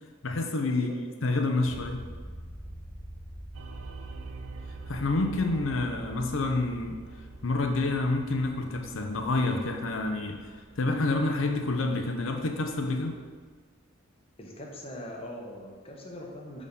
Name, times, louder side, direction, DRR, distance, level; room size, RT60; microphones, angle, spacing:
voice 1, 0.2-0.9 1.2-2.0 4.9-7.0 7.4-10.4 10.8-13.1, left 2 dB, 70° left, 4 dB, 0.7 m, -28 dB
sound 1, 1.7-13.6, equal, 15° right, 1.0 m, -47 dB
sound 2, 3.5-10.3, right 4 dB, 75° right, 0.5 m, -45 dB
voice 2, 14.4-16.6, equal, 30° left, -1 dB, 0.9 m, -42 dB
6.5 x 3.7 x 5.3 m, 1.5 s
head